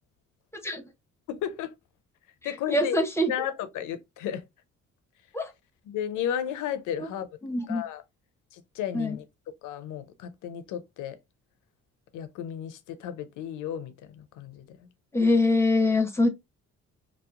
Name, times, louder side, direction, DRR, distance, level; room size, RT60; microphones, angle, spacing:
voice 1, 1.3-1.7 2.4-3.0 3.3-4.4 5.9-7.3 7.7-8.0 8.5-9.2 9.6-11.2 12.1-14.8, left 9 dB, 85° left, 0.5 m, -33 dB
voice 2, 2.7-3.3 5.3-5.5 7.0-7.1 7.4-7.8 8.9-9.2 15.1-16.3, left 2 dB, 10° left, 0.7 m, -24 dB
2.9 x 2.0 x 2.3 m
cardioid pair, 90°, 30 cm